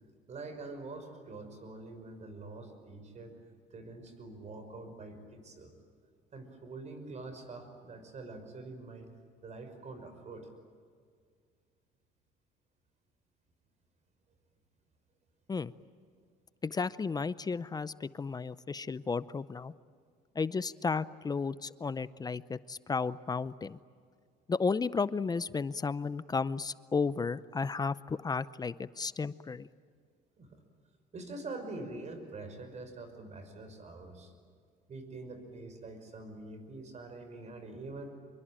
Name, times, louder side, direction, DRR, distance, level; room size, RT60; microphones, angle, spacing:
voice 1, 0.3-3.4 3.7-5.7 6.3-9.1 9.4-10.5 30.4-30.6 31.1-34.3 34.9-38.1, right 3 dB, 40° right, 8 dB, 5.7 m, -45 dB
voice 2, 16.6-19.7 20.4-23.8 24.5-29.7, left 4 dB, 25° left, 16 dB, 0.6 m, -33 dB
26.0 x 23.5 x 9.0 m, 2.1 s
cardioid pair, 110°, 17 cm